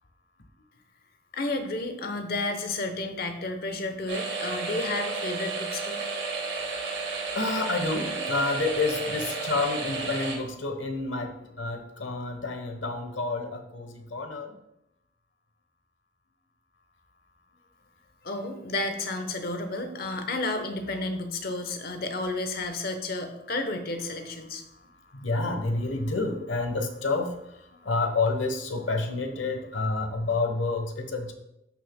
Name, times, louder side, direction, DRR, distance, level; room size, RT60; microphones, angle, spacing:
voice 1, 1.3-6.0 6.4-6.5 18.2-24.6, left 2 dB, 50° left, 6 dB, 0.9 m, -31 dB
sound 1, 4.1-10.4, right 4 dB, 75° right, 1.9 m, -32 dB
voice 2, 7.3-14.6 25.1-31.3, left 3 dB, 85° left, 6 dB, 1.1 m, -29 dB
13.0 x 6.1 x 2.2 m, 0.83 s
head